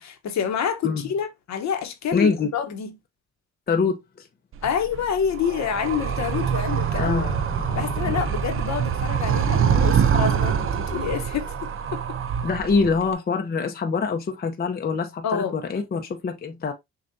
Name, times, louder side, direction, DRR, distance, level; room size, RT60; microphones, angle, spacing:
voice 1, 0.0-3.0 4.6-7.2 7.8-11.5 11.9-12.0 15.2-15.5, left 7 dB, 65° left, 1.1 m, -27 dB
voice 2, 2.1-2.5 3.7-4.0 6.9-8.3 12.4-16.7, left 4 dB, 30° left, 0.7 m, -25 dB
Animal, 4.5-13.1, right 8 dB, 45° right, 0.6 m, -25 dB
6.6 x 2.5 x 2.7 m
cardioid pair, 90°, 30 cm